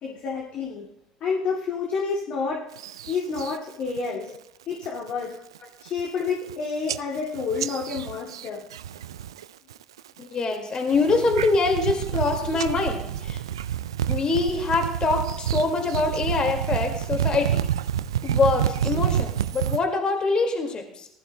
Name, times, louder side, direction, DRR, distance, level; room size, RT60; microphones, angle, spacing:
voice 1, 0.0-0.9 1.2-2.7 3.1-4.3 4.7-5.4 5.8-8.6, left 5 dB, 50° left, -2 dB, 2.3 m, -29 dB
sound 1, 2.8-3.6 4.0-4.4 4.7-5.1 5.6-5.7 5.9-6.5 6.9-9.4 9.7-10.2 10.7-19.8, right 10 dB, 80° right, 0.3 m, -28 dB
voice 2, 10.2-13.4 14.1-17.6 18.2-21.1, left 3 dB, 35° left, 4 dB, 2.0 m, -24 dB
19.0 x 14.0 x 2.2 m, 0.73 s
hypercardioid pair, 65°, 3 cm